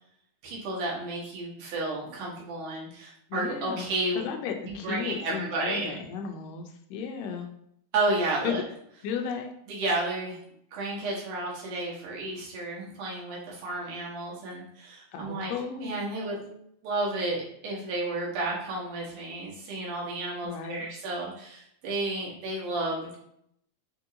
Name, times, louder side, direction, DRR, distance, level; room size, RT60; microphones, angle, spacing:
voice 1, 0.4-4.2 4.6-6.0 7.9-8.6 9.7-10.4 10.7-15.5 15.8-23.2, right 2 dB, 75° right, -4 dB, 2.7 m, -32 dB
voice 2, 3.3-3.8 4.2-7.5 8.4-8.6 9.0-9.5 15.1-16.0 20.4-20.8, left 6 dB, 85° left, 4 dB, 2.3 m, -34 dB
6.0 x 2.6 x 2.8 m, 0.71 s
omnidirectional pair, 3.8 m